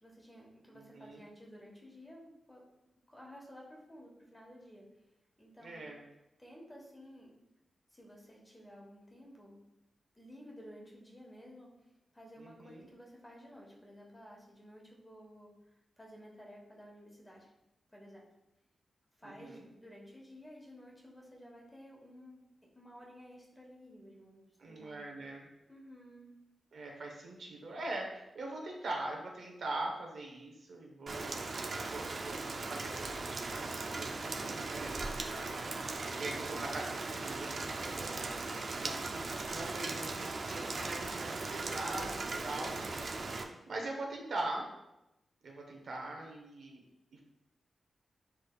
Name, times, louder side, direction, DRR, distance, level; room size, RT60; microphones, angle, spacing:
voice 1, 0.0-2.6 3.1-4.9 5.4-5.9 6.4-7.3 7.9-9.6 10.2-11.7 12.1-15.5 16.0-17.5 17.9-18.2 19.2-25.1 25.4-26.3 34.2-34.6 37.9-38.0 42.2-42.9, equal, 15° left, -3 dB, 1.2 m, -54 dB
voice 2, 5.6-6.0 12.4-12.9 19.2-19.7 24.6-25.5 26.7-38.2 38.8-39.0 39.5-42.7 43.7-44.6 45.4-46.8 47.1-47.2, right 2 dB, 70° right, 0 dB, 1.1 m, -42 dB
Rain, 31.1-43.4, right 3 dB, 55° right, 0.5 m, -38 dB
6.3 x 3.4 x 2.4 m, 0.93 s
wide cardioid pair, 95°, 0 cm